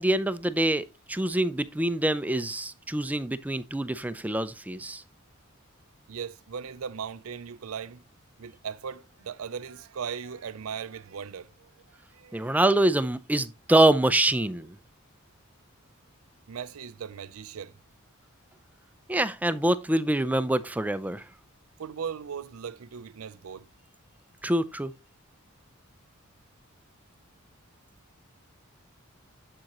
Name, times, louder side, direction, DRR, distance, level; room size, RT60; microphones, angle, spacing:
voice 1, 0.0-5.0 12.3-14.7 19.1-21.2 24.4-24.9, right 1 dB, 5° right, 0.4 m, -25 dB
voice 2, 6.1-8.0 8.4-12.6 16.5-17.8 21.8-23.7, right 7 dB, 80° right, 0.5 m, -38 dB
7.6 x 7.2 x 3.0 m
head